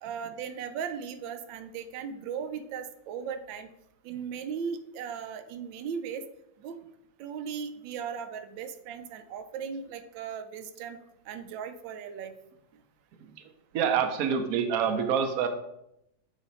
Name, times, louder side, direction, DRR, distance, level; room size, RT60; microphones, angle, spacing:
voice 1, 0.0-3.7 4.0-6.2 6.6-6.8 7.2-11.0 11.3-12.3, right 7 dB, 90° right, 9 dB, 1.3 m, -37 dB
voice 2, 13.7-15.5, right 7 dB, 65° right, 6 dB, 1.0 m, -26 dB
8.2 x 3.2 x 4.0 m, 0.82 s
omnidirectional pair, 2.0 m